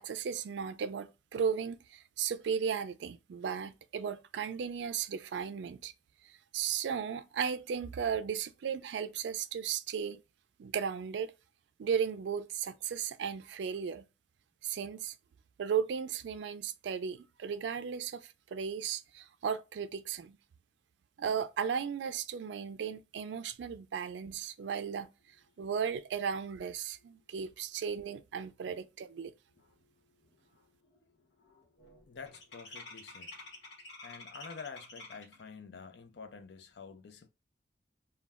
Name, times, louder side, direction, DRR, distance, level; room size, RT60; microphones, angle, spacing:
voice 1, 0.0-5.9 6.2-10.2 10.6-11.3 11.8-14.1 14.6-15.1 15.6-20.4 21.2-25.1 25.6-29.3, right 7 dB, 85° right, 0.3 m, -35 dB
sound 1, 29.8-29.9 30.2-30.6 30.8-35.5, left 2 dB, 85° left, 1.1 m, -50 dB
voice 2, 32.1-33.5 34.0-37.3, left 5 dB, 70° left, 0.5 m, -48 dB
2.2 x 2.1 x 3.4 m
head